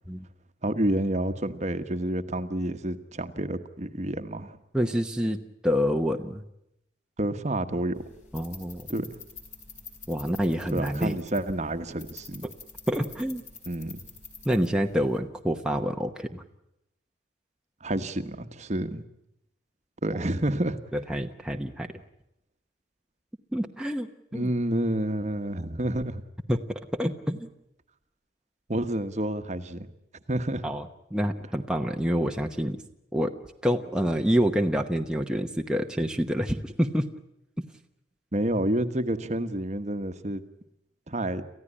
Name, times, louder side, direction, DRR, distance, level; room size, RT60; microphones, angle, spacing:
voice 1, 0.6-4.6 7.2-7.9 8.9-9.2 10.7-12.5 13.7-14.0 17.8-19.0 20.0-20.8 24.3-26.2 28.7-29.9 30.3-30.6 38.3-40.4 41.1-41.4, right 1 dB, 40° right, 9 dB, 1.2 m, -29 dB
voice 2, 4.7-5.4 5.6-6.4 8.3-8.9 10.1-11.2 12.4-12.5 12.9-13.4 14.4-16.4 20.9-21.9 23.5-24.1 24.3-24.5 26.5-26.6 26.9-27.5 30.6-30.8 31.1-32.8 33.1-33.3 33.6-37.1, equal, 5° right, 3 dB, 1.0 m, -27 dB
sound 1, 7.9-15.2, left 4 dB, 40° left, 4.6 m, -47 dB
28.5 x 15.0 x 9.9 m, 0.83 s
head